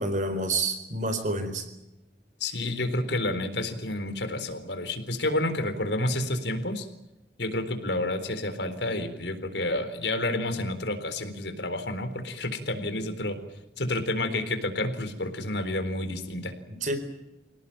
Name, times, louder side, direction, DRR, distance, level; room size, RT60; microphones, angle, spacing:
voice 1, 0.0-1.7 16.7-17.0, right 2 dB, 45° right, 9 dB, 4.1 m, -28 dB
voice 2, 2.4-6.9 7.4-13.4 13.8-16.5, left 1 dB, 90° left, 9 dB, 4.0 m, -30 dB
27.5 x 18.0 x 8.8 m, 0.97 s
head